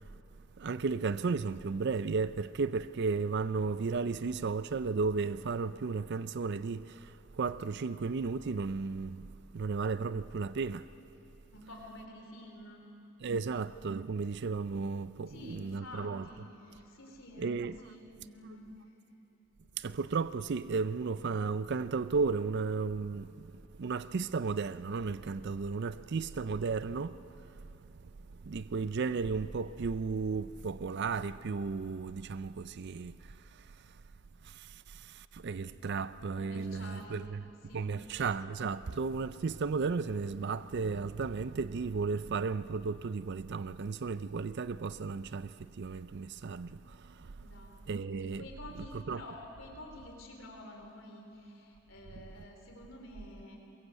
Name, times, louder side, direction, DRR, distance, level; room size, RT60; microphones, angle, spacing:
voice 1, 0.6-10.9 13.2-16.3 17.4-17.8 19.8-34.0 34.4-37.5 37.7-47.5 47.9-48.4 48.8-49.2 52.1-52.2, right 4 dB, 55° right, 0.5 m, -34 dB
voice 2, 11.5-12.8 13.4-13.5 15.3-18.8 36.3-37.2 37.7-37.9 47.4-53.6, left 1 dB, 70° left, 4.0 m, -49 dB
23.0 x 22.0 x 8.1 m
head